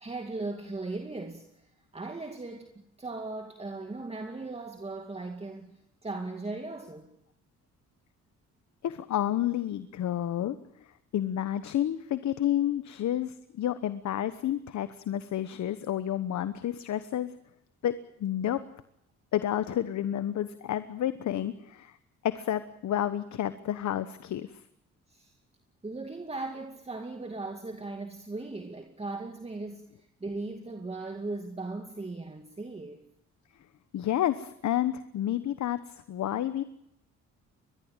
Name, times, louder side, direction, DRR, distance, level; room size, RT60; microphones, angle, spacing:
voice 1, 0.0-1.7 1.9-7.2 25.1-25.3 25.8-29.9 30.2-33.0, right 3 dB, 20° right, 2.4 m, -38 dB
voice 2, 8.8-10.6 11.1-17.3 17.8-18.6 19.3-22.0 22.2-24.5 33.9-35.8 36.1-36.6, left 11 dB, 65° left, 1.2 m, -30 dB
23.5 x 20.5 x 9.0 m
cardioid pair, 90°, 30 cm